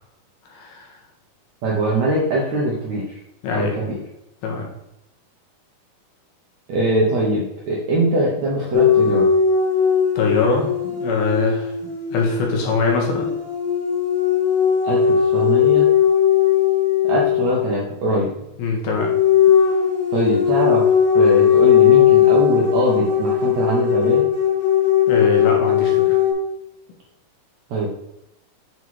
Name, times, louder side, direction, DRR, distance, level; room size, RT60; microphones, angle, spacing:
voice 1, 0.5-1.0 3.4-3.7 4.4-4.7 10.2-11.7 12.1-13.3 18.6-19.1 25.1-26.2, left 3 dB, 75° left, 0 dB, 3.3 m, -22 dB
voice 2, 1.6-3.2 3.5-4.0 6.7-9.3 14.8-15.9 17.0-18.3 20.1-20.8 21.1-24.2 27.7-27.9, right 1 dB, 70° right, -4 dB, 1.7 m, -22 dB
sound 1, 8.7-17.8 18.9-26.3, left 9 dB, 55° left, 1.5 m, -18 dB
7.8 x 4.1 x 4.7 m, 0.85 s
omnidirectional pair, 4.6 m